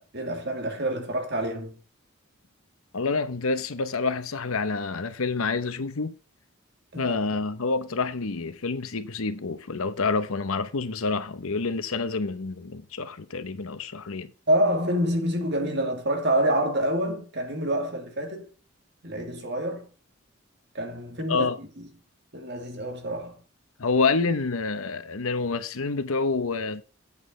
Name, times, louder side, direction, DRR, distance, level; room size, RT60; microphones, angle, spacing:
voice 1, 0.0-1.8 6.9-7.2 14.5-18.5 19.0-19.9 20.7-21.9 22.3-23.4, right 1 dB, 50° right, 2.0 m, -27 dB
voice 2, 2.9-6.1 7.0-14.3 21.3-21.6 23.8-26.8, left 4 dB, 80° left, 0.9 m, -28 dB
8.2 x 5.3 x 5.5 m
head